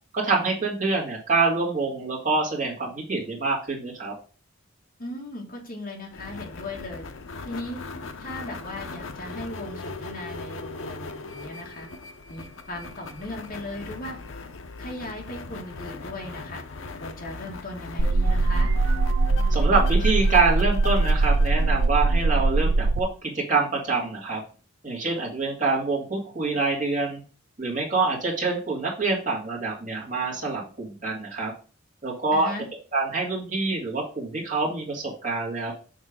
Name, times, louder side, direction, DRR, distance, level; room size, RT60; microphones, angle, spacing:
voice 1, 0.1-4.1 19.5-24.4 24.8-27.2 27.6-31.5 32.0-32.5 32.9-35.7, right 3 dB, 40° right, -3 dB, 2.3 m, -26 dB
voice 2, 5.0-7.1 7.5-7.8 8.2-11.9 12.3-14.2 14.8-16.6 17.0-18.8 32.3-32.7, left 1 dB, 45° left, -1 dB, 1.8 m, -37 dB
sound 1, 6.1-22.6, left 3 dB, 70° left, 0.7 m, -40 dB
sound 2, 18.0-23.0, right 3 dB, 75° right, 0.5 m, -21 dB
6.5 x 3.6 x 5.1 m, 0.38 s
head